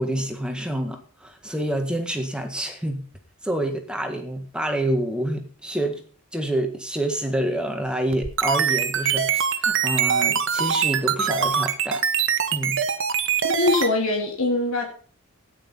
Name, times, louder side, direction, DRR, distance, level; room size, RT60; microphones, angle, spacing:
voice 1, 0.0-3.0 3.4-6.0 6.3-12.0 12.5-12.8, right 1 dB, 5° right, 4 dB, 1.8 m, -27 dB
sound 1, 8.1-13.9, right 7 dB, 60° right, 1.3 m, -23 dB
voice 2, 13.4-14.8, left 2 dB, 70° left, 1 dB, 2.6 m, -22 dB
13.5 x 9.9 x 5.6 m, 0.43 s
head